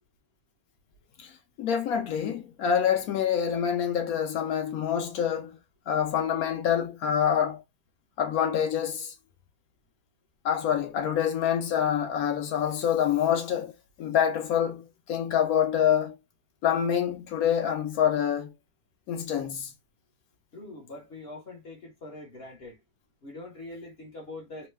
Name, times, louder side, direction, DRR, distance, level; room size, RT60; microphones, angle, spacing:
voice 1, 1.6-5.5 5.9-7.6 8.2-9.1 10.4-13.7 14.0-16.1 16.6-18.5 19.1-19.7, left 9 dB, 70° left, 0.9 m, -26 dB
voice 2, 20.5-22.8 23.2-24.7, left 2 dB, 45° left, 0.9 m, -43 dB
3.0 x 2.2 x 3.2 m
omnidirectional pair, 2.0 m